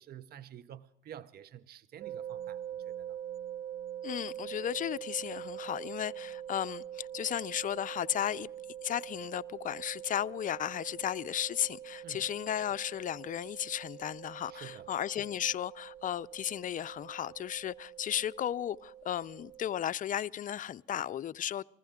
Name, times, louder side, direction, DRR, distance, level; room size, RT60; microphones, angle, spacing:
voice 1, 0.0-3.2 12.0-12.2 14.5-14.9, right 10 dB, 50° right, 0.6 m, -50 dB
sound 1, 2.0-19.8, right 10 dB, 85° right, 0.9 m, -44 dB
voice 2, 4.0-8.5 8.8-21.6, left 10 dB, 40° left, 0.4 m, -35 dB
20.5 x 15.5 x 3.6 m
supercardioid pair, 80°, 21 cm